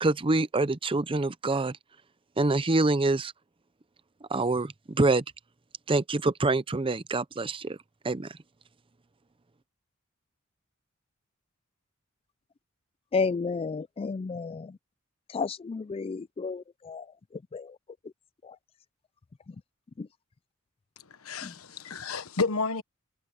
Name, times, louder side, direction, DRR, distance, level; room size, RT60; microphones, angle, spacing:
voice 1, 0.0-1.8 2.4-3.3 4.3-5.2 5.9-7.8 8.0-8.4, right 2 dB, 25° right, 0.6 m, -26 dB
voice 2, 13.1-14.5 15.3-16.6 16.9-17.0, left 4 dB, 25° left, 0.3 m, -30 dB
voice 3, 21.1-22.8, left 4 dB, 85° left, 1.2 m, -31 dB
head